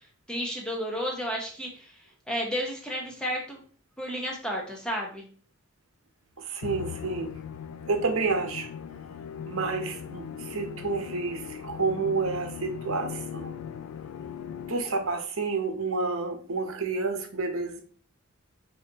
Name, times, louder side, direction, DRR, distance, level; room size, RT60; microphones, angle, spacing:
voice 1, 0.3-1.9 2.3-3.6 4.0-5.3, equal, 5° left, -1 dB, 0.9 m, -32 dB
voice 2, 6.4-7.3 7.9-8.7 9.4-13.6 14.7-17.8, right 4 dB, 75° right, 5 dB, 0.7 m, -30 dB
Musical instrument, 6.6-15.1, left 8 dB, 85° left, 0.3 m, -39 dB
4.9 x 2.7 x 2.8 m, 0.43 s
head